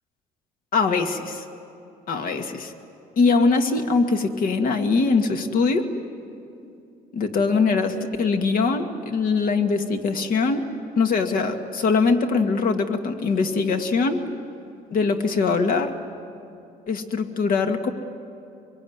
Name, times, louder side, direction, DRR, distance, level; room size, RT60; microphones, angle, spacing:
voice 1, 0.7-1.4 2.1-2.7 3.2-5.9 7.1-10.6 11.0-14.2 14.9-15.9 16.9-17.9, left 4 dB, 55° left, 5 dB, 2.1 m, -22 dB
25.0 x 23.0 x 9.6 m, 2.6 s
cardioid pair, 110°, 17 cm